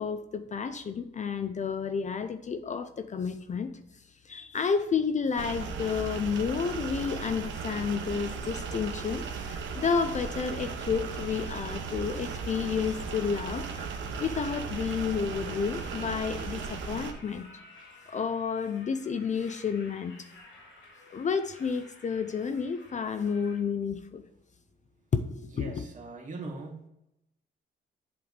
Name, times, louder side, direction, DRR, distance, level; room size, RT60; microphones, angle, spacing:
voice 1, 0.0-3.7 4.2-13.7 14.2-17.5 17.8-20.3 21.1-24.2 25.1-25.8, left 6 dB, 35° left, 10 dB, 0.5 m, -31 dB
sound 1, 5.4-17.1, right 5 dB, 70° right, 1.0 m, -36 dB
sound 2, 8.4-23.6, left 1 dB, 80° left, 2.5 m, -54 dB
voice 2, 25.5-26.9, right 3 dB, 40° right, 1 dB, 1.9 m, -41 dB
7.8 x 3.5 x 6.4 m, 0.83 s
cardioid pair, 90°, 20 cm